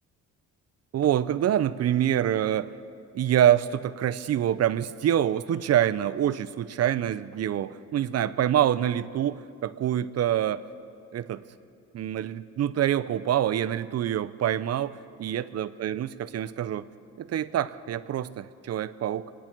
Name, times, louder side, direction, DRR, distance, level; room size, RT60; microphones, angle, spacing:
voice 1, 0.9-2.7 3.1-10.6 11.1-11.4 11.9-16.8 17.2-19.3, right 11 dB, 55° right, 14 dB, 0.7 m, -26 dB
27.0 x 10.0 x 4.6 m, 2.4 s
cardioid pair, 90°, 30 cm